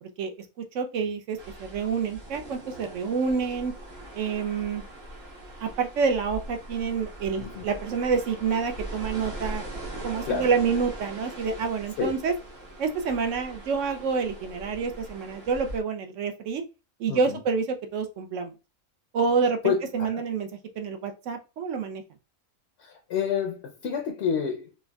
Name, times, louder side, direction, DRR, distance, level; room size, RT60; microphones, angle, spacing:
voice 1, 0.0-3.7 4.1-4.8 5.6-12.3 12.8-16.6 17.0-18.5 19.1-20.5 20.8-22.0, right 5 dB, 70° right, 0.9 m, -28 dB
sound 1, 1.4-15.8, right 1 dB, 50° right, 1.2 m, -41 dB
voice 2, 17.1-17.4 19.6-20.2 22.8-24.8, left 7 dB, 65° left, 0.7 m, -29 dB
4.4 x 2.3 x 2.2 m
omnidirectional pair, 1.4 m